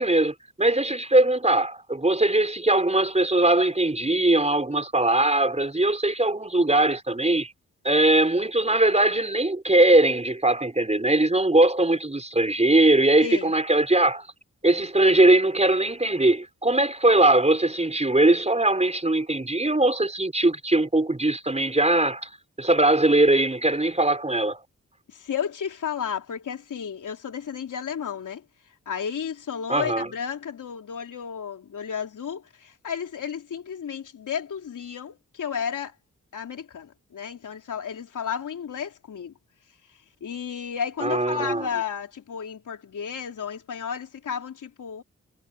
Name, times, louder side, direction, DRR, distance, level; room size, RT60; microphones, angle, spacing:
voice 1, 0.0-7.5 7.8-14.3 14.6-22.3 22.6-24.6 29.7-30.1 41.0-41.7, right 2 dB, 20° right, 5.4 m, -21 dB
voice 2, 13.2-13.5 25.1-28.4 28.8-35.9 36.3-39.3 40.2-45.0, left 7 dB, 85° left, 3.6 m, -33 dB
cardioid pair, 50°, 30 cm